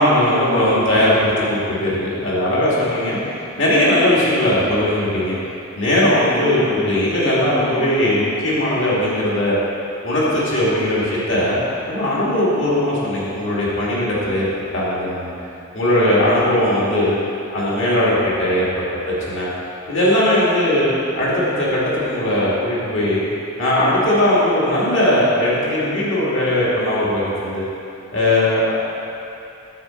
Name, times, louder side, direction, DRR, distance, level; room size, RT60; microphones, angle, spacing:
voice 1, 0.0-3.2 3.6-5.4 5.7-9.6 10.0-11.6 11.9-15.3 15.7-17.2 17.5-19.5 19.9-20.9 21.2-23.2 23.6-27.7 28.1-28.7, left 1 dB, 70° left, -7 dB, 2.5 m, -19 dB
9.4 x 7.6 x 4.5 m, 2.7 s
head